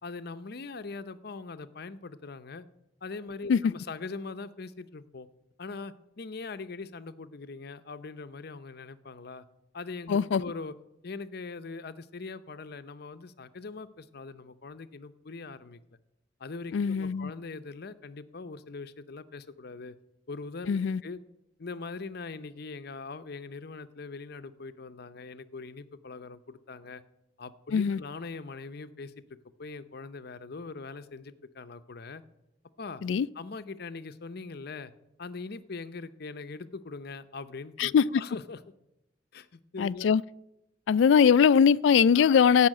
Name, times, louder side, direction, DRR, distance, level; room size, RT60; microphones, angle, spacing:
voice 1, 0.0-2.6 3.0-5.3 5.6-9.5 9.7-10.7 11.0-15.8 16.4-20.0 20.3-21.2 21.6-27.0 27.4-29.1 29.6-32.2 32.8-33.0 33.4-34.9 35.2-38.6 39.3-40.1 42.1-42.4, left 4 dB, 60° left, 0.7 m, -41 dB
voice 2, 10.1-10.4 16.7-17.3 20.7-21.0 27.7-28.0 33.0-33.3 37.8-38.1 39.8-40.2 40.9-42.7, left 7 dB, 85° left, 0.3 m, -21 dB
15.5 x 5.7 x 8.6 m
head